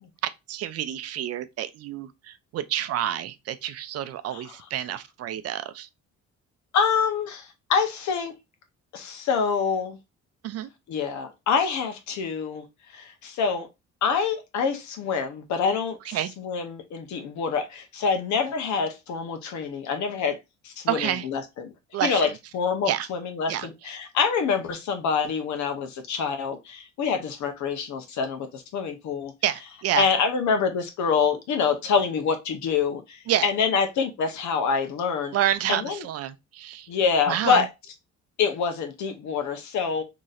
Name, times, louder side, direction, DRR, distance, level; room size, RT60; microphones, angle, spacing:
voice 1, 0.2-5.9 10.4-10.7 16.1-16.3 20.9-21.2 21.9-22.3 22.9-23.1 23.5-23.7 29.4-30.1 33.3-33.5 35.3-36.9 37.3-37.6, right 12 dB, 55° right, 0.4 m, -28 dB
voice 2, 6.7-8.3 8.9-10.0 10.9-12.6 12.9-13.7 14.0-20.4 20.6-21.7 22.0-22.3 22.5-29.3 30.0-35.3 35.7-36.0 36.9-37.7 38.4-40.0, left 6 dB, 75° left, 0.9 m, -26 dB
4.0 x 2.9 x 2.5 m
cardioid pair, 160°, 29 cm